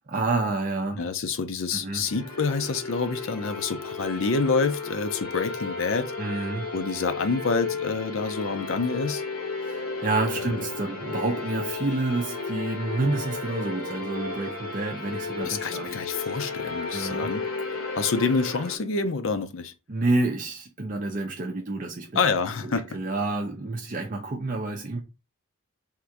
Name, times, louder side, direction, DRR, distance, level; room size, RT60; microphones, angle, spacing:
voice 1, 0.1-1.0 1.7-2.1 6.2-6.7 9.6-16.0 16.9-17.3 19.9-22.2 22.6-25.0, right 2 dB, 40° right, 0.6 m, -29 dB
voice 2, 1.0-6.1 6.7-9.2 15.4-17.4 17.9-19.7 22.1-23.0, left 4 dB, 65° left, 0.5 m, -27 dB
sound 1, 2.0-18.8, left 4 dB, 85° left, 1.3 m, -33 dB
3.6 x 2.6 x 4.5 m
head